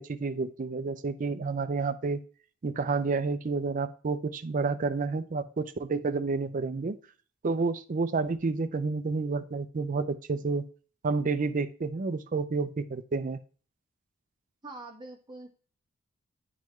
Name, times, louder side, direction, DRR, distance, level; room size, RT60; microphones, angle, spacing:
voice 1, 0.0-2.2 2.6-7.0 7.4-10.6 11.0-13.4, right 4 dB, 40° right, 12 dB, 0.4 m, -30 dB
voice 2, 14.6-15.5, right 2 dB, 20° right, 0 dB, 1.2 m, -44 dB
10.0 x 3.8 x 3.1 m, 0.41 s
head